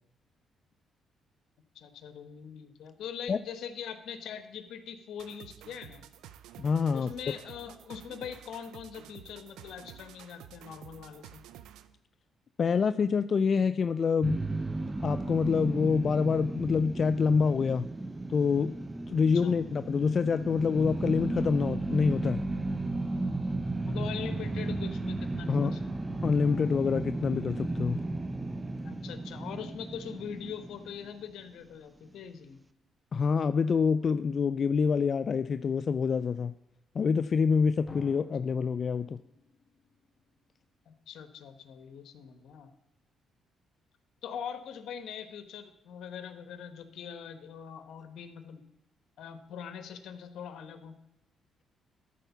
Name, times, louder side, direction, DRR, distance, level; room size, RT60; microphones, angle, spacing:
voice 1, 1.7-6.0 6.9-11.4 19.3-19.5 23.8-26.2 28.8-32.6 40.9-42.7 44.2-48.6 49.2-50.9, left 8 dB, 75° left, 10 dB, 1.0 m, -42 dB
sound 1, 5.2-12.0, right 11 dB, 90° right, 0.5 m, -51 dB
voice 2, 6.6-7.1 12.6-14.4 15.0-17.9 18.3-18.8 19.1-22.4 25.5-25.7 26.2-28.0 33.1-36.5 37.0-39.2, left 5 dB, 45° left, 12 dB, 0.3 m, -26 dB
sound 2, 14.2-31.4, right 2 dB, 20° right, 0.6 m, -34 dB
Drum, 37.9-40.6, left 3 dB, 25° left, 1.6 m, -50 dB
12.5 x 4.4 x 7.0 m, 0.88 s
cardioid pair, 90°, 0 cm